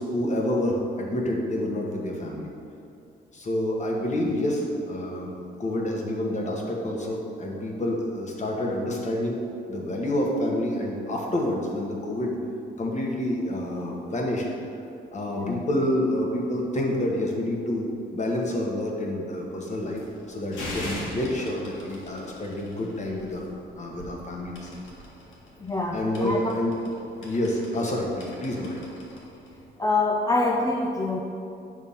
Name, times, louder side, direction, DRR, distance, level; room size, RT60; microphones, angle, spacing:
voice 1, 0.0-2.5 3.3-5.3 5.6-9.4 9.7-12.4 12.8-14.4 15.1-20.0 20.3-23.4 23.7-24.7 25.9-26.7 27.2-28.8, left 1 dB, 35° left, -1 dB, 1.3 m, -28 dB
voice 2, 15.3-15.6 25.6-26.5 29.8-31.2, left 2 dB, 15° left, 0 dB, 0.5 m, -26 dB
sound 1, 19.7-29.7, left 1 dB, 85° left, 1.6 m, -42 dB
6.8 x 3.6 x 5.6 m, 2.6 s
cardioid pair, 90°, 20 cm